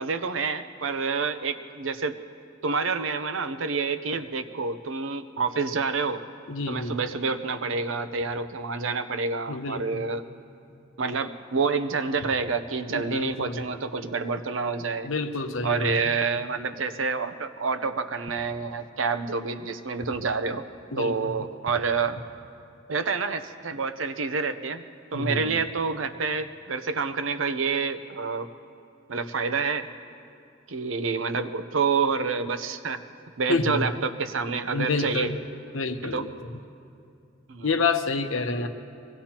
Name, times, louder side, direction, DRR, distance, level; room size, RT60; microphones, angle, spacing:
voice 1, 0.0-2.2 2.6-6.2 6.7-10.2 11.0-15.1 15.6-20.6 21.0-22.2 22.9-24.8 25.1-28.5 29.1-29.9 30.7-33.0 33.4-35.3 36.0-36.2 37.5-37.8, right 4 dB, 80° right, 10 dB, 0.7 m, -28 dB
voice 2, 6.5-7.0 9.5-10.0 12.9-13.6 15.0-15.9 20.9-21.4 25.1-25.5 33.5-33.8 34.7-35.4 35.7-36.3 37.6-38.7, left 3 dB, 90° left, 7 dB, 0.9 m, -28 dB
23.5 x 18.0 x 2.9 m, 2.5 s
head